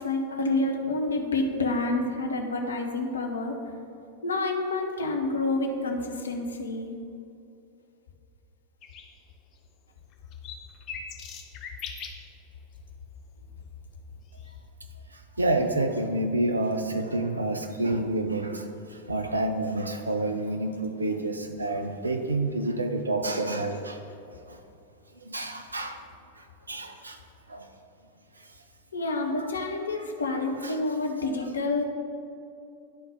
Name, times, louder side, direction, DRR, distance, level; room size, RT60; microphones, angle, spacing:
voice 1, 0.0-3.6 4.2-6.9 28.9-31.8, left 2 dB, 70° left, 3 dB, 0.8 m, -28 dB
sound 1, 8.8-9.1 9.5-9.6 10.1-12.3 14.4-14.5, left 5 dB, 35° left, 0.7 m, -40 dB
voice 2, 15.1-24.0 24.3-24.6 25.2-26.0 26.4-27.2 27.5-27.7 29.0-29.5 30.0-30.1 30.6-30.8 31.2-31.5, right 2 dB, 80° right, 6 dB, 0.5 m, -29 dB
11.0 x 3.7 x 3.9 m, 2.7 s
figure-of-eight pair, 90°, 0 cm